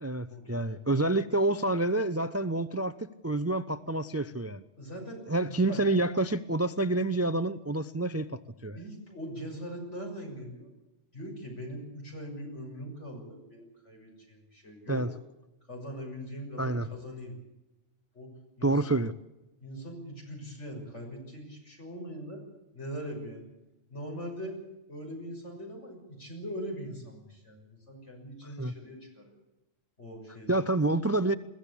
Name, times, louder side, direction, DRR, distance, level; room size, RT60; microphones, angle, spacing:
voice 1, 0.0-3.0 3.2-4.6 5.3-8.8 14.9-15.1 16.6-16.9 18.6-19.1 28.6-28.7 30.5-31.4, right 2 dB, 20° right, 13 dB, 0.5 m, -28 dB
voice 2, 4.8-5.8 8.7-10.7 11.1-15.0 15.7-17.3 18.1-18.3 18.6-18.8 19.6-22.4 22.7-23.4 23.9-24.6 24.9-29.4 30.0-30.6, equal, 70° left, 1 dB, 6.6 m, -41 dB
22.0 x 15.5 x 8.4 m, 0.97 s
omnidirectional pair, 1.2 m